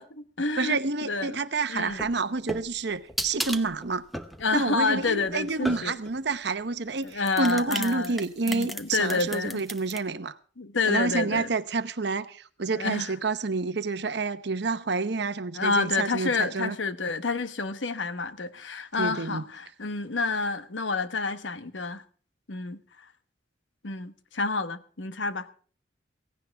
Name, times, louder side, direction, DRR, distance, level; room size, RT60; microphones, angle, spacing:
voice 1, 0.0-1.4 1.7-2.1 4.4-5.9 7.0-8.2 8.5-9.6 10.6-11.5 12.7-13.1 15.5-22.0 22.5-22.8 23.8-25.5, left 4 dB, 80° left, 1.2 m, -29 dB
voice 2, 0.6-4.0 4.5-10.3 10.9-16.8 19.0-19.4, right 4 dB, 65° right, 0.9 m, -29 dB
sound 1, 1.8-6.2 7.0-10.0, equal, ahead, 0.8 m, -36 dB
16.5 x 16.5 x 3.5 m
head